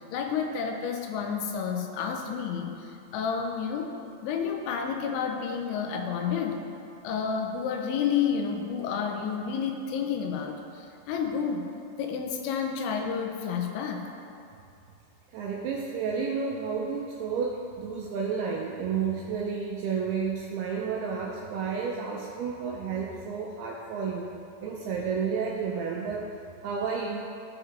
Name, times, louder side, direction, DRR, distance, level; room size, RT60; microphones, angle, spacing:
voice 1, 0.0-3.9 4.2-6.7 7.0-11.7 12.0-14.1, left 6 dB, 85° left, 4 dB, 3.1 m, -30 dB
voice 2, 15.3-24.3 24.6-26.2 26.6-27.2, right 6 dB, 80° right, -2 dB, 2.3 m, -31 dB
14.0 x 4.9 x 3.3 m, 2.5 s
omnidirectional pair, 5.2 m